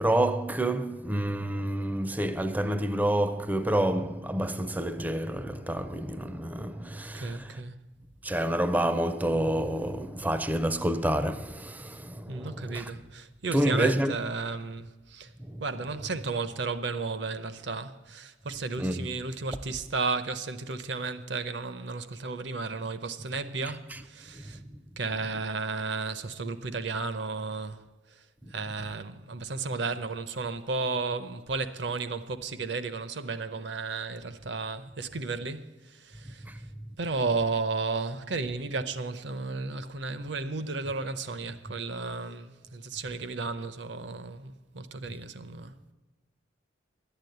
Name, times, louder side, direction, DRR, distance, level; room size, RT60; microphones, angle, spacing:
voice 1, 0.0-7.6 8.2-12.9 13.5-14.1 15.4-15.6 18.8-19.1 23.9-24.0 24.3-24.8 28.4-28.5 36.2-36.6, right 1 dB, 10° right, 0.4 m, -29 dB
voice 2, 7.1-7.8 12.3-15.3 15.6-24.6 25.0-27.8 28.1-28.2 28.5-36.4 37.0-45.9, right 3 dB, 65° right, 0.7 m, -33 dB
11.5 x 9.0 x 7.9 m
head